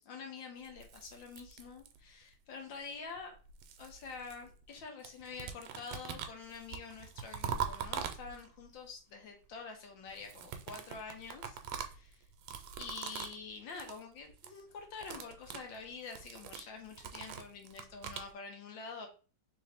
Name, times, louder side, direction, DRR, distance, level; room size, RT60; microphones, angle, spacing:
voice 1, 0.0-3.4 3.8-11.6 11.9-12.2 12.8-19.1, left 5 dB, 65° left, 2 dB, 1.6 m, -47 dB
Corn crunch, 0.6-2.2 3.2-4.8 5.0-8.7 10.1-13.4 13.7-14.0 14.3-14.6 14.9-18.3, right 8 dB, 85° right, 1.5 m, -43 dB
3.7 x 3.0 x 3.4 m, 0.36 s
omnidirectional pair, 2.4 m